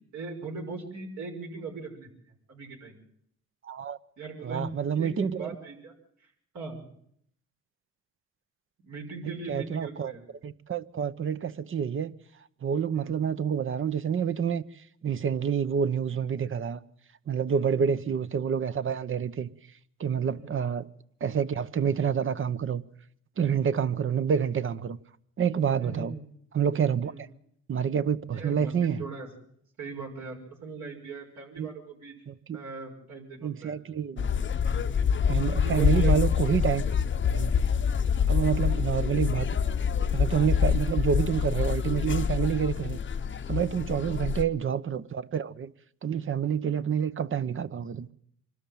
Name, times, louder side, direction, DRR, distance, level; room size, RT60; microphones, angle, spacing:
voice 1, 0.1-2.1 2.5-3.0 4.2-4.6 4.9-5.9 6.2-6.3 6.5-6.8 8.8-10.2 13.0-13.1 17.6-17.8 20.3-20.5 23.8-23.9 25.8-26.2 27.0-27.2 28.3-29.3 29.8-32.1 32.5-33.8 35.5-36.1 38.3-38.7 43.9-44.1 46.6-46.7, right 4 dB, 70° right, 5.9 m, -39 dB
voice 2, 3.6-4.0 4.4-5.5 9.2-10.1 10.4-12.1 12.6-14.6 15.0-16.8 17.3-19.5 20.0-20.9 21.2-22.8 23.4-25.0 25.4-26.1 26.5-27.3 27.7-29.0 31.6-31.7 32.3-32.6 33.4-34.3 35.3-36.9 37.2-37.5 38.3-39.6 40.1-43.0 43.5-45.7 46.0-48.1, right 7 dB, 45° right, 1.0 m, -28 dB
sound 1, 34.2-44.4, left 7 dB, 40° left, 0.8 m, -26 dB
25.0 x 13.0 x 9.1 m
cardioid pair, 90°, 30 cm